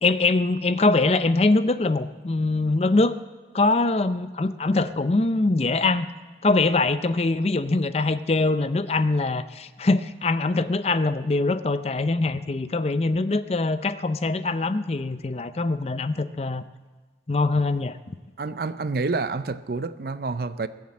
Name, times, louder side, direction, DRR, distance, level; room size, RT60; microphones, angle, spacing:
voice 1, 0.0-3.2 3.5-6.1 6.4-16.6 17.3-18.2, left 3 dB, 35° left, 0.5 m, -23 dB
voice 2, 18.4-20.7, right 3 dB, 55° right, 0.5 m, -28 dB
20.5 x 7.3 x 7.6 m
head